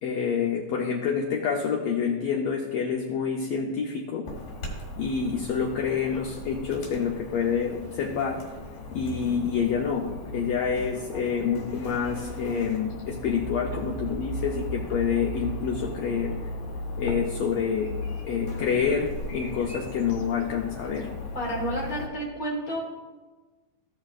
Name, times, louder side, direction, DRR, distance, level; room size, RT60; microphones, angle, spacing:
voice 1, 0.0-4.3 5.0-8.4 8.9-16.3 17.0-17.9 18.3-21.1, left 6 dB, 90° left, 1 dB, 1.4 m, -27 dB
Chirp tweet / Buzz, 4.2-22.1, left 1 dB, 65° left, 3.0 m, -37 dB
voice 2, 21.3-22.8, equal, 45° left, -3 dB, 1.1 m, -31 dB
15.5 x 6.4 x 2.4 m, 1.3 s
omnidirectional pair, 3.7 m